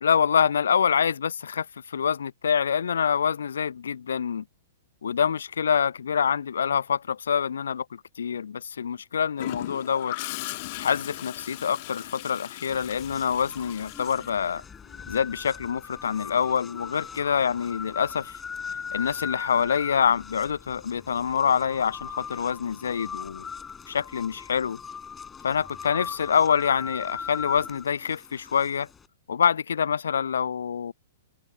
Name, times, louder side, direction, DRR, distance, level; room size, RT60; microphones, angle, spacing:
voice 1, 0.0-4.4 5.0-10.2 10.8-14.6 15.1-18.4 18.9-23.5 23.9-24.8 25.4-28.9 29.3-30.9, left 7 dB, 65° left, 0.8 m, -26 dB
Gurgling / Toilet flush, 9.4-15.1 17.1-17.4, left 22 dB, 40° left, 1.0 m, -39 dB
sound 1, 12.7-29.1, left 6 dB, 15° left, 4.6 m, -40 dB
open air
figure-of-eight pair, 110°, 0 cm